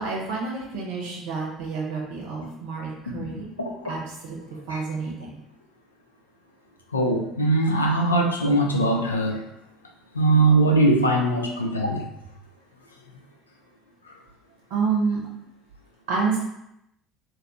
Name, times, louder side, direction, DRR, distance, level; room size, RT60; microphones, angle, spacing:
voice 1, 0.0-3.5 3.8-4.4 4.7-5.3 14.7-15.2 16.1-16.4, right 4 dB, 70° right, -1 dB, 0.7 m, -28 dB
voice 2, 3.6-3.9 4.7-4.8 6.9-9.4 10.1-12.1, right 2 dB, 90° left, 1 dB, 0.3 m, -21 dB
2.6 x 2.3 x 2.6 m, 0.82 s
figure-of-eight pair, 60°, 0 cm